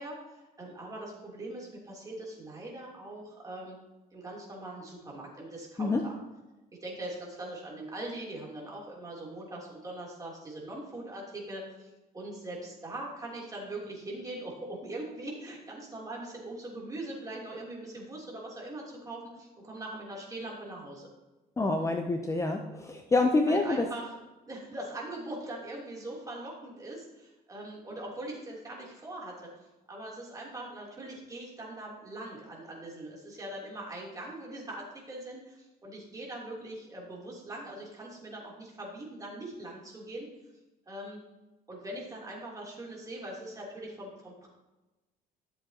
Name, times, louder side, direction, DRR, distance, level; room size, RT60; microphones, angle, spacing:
voice 1, 0.0-3.8 4.1-6.1 6.8-21.1 23.1-24.1 24.5-29.5 29.9-40.3 40.9-41.2 41.7-44.5, right 1 dB, 20° right, -4 dB, 3.3 m, -41 dB
voice 2, 21.6-23.9, left 2 dB, 15° left, 4 dB, 0.7 m, -27 dB
12.5 x 7.6 x 2.9 m, 1.1 s
cardioid pair, 110°, 17 cm